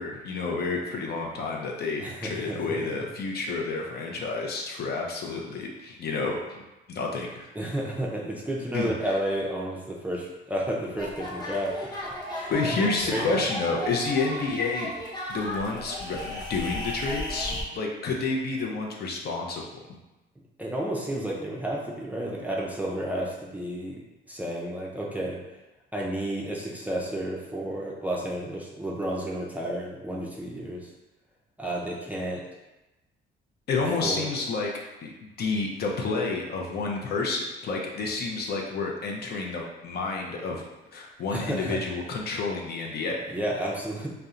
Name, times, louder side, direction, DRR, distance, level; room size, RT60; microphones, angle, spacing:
voice 1, 0.0-7.5 8.7-9.1 12.5-14.9 15.3-19.6 33.7-34.7 35.0-40.7 40.9-43.4, left 3 dB, 55° left, 0 dB, 0.5 m, -30 dB
voice 2, 2.0-2.9 7.6-11.9 12.3-13.3 20.6-25.4 25.9-30.9 31.6-32.4 34.0-34.3 41.3-41.8 43.3-44.1, right 1 dB, 10° right, -3 dB, 0.4 m, -31 dB
sound 1, 11.0-17.6, left 1 dB, 20° left, 0.8 m, -35 dB
2.7 x 2.1 x 2.4 m, 1.0 s
cardioid pair, 90°, 20 cm